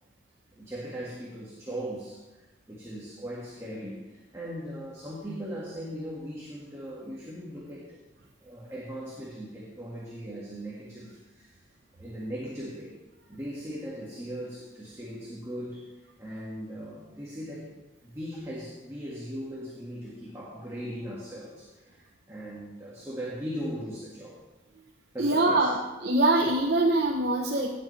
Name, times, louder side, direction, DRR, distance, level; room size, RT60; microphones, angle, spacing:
voice 1, 0.5-2.2 2.7-8.0 8.4-11.6 12.0-13.0 13.3-24.4 25.1-25.8, equal, 15° right, -6 dB, 1.9 m, -39 dB
voice 2, 25.2-27.7, right 2 dB, 55° right, 0 dB, 1.0 m, -24 dB
18.0 x 8.0 x 3.4 m, 1.1 s
head